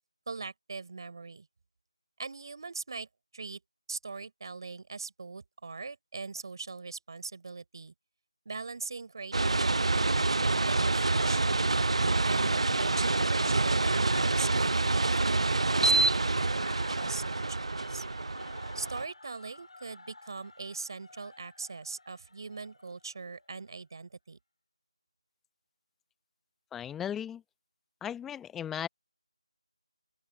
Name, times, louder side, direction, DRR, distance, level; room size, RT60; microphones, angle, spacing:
voice 1, 0.3-1.5 2.2-3.1 3.3-3.6 3.9-7.9 8.5-10.1 10.6-11.7 12.3-18.0 18.7-24.4, right 4 dB, 45° right, 4.1 m, -41 dB
sound 1, 9.3-19.1, right 3 dB, 65° right, 0.5 m, -27 dB
sound 2, 11.0-23.8, left 2 dB, 65° left, 3.3 m, -50 dB
voice 2, 26.7-27.4 28.0-28.9, left 9 dB, 5° left, 0.8 m, -36 dB
open air
figure-of-eight pair, 165°, 3 cm